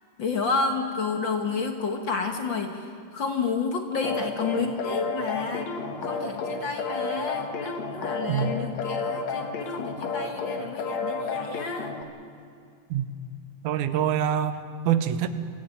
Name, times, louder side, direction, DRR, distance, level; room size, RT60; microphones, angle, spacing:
voice 1, 0.2-2.9 3.1-5.7 6.0-11.9, left 4 dB, 50° left, 5 dB, 1.7 m, -30 dB
sound 1, 4.0-12.0, left 4 dB, 65° left, 2.6 m, -31 dB
voice 2, 13.6-15.3, right 9 dB, 85° right, 11 dB, 2.4 m, -25 dB
24.5 x 15.5 x 9.1 m, 2.5 s
omnidirectional pair, 3.4 m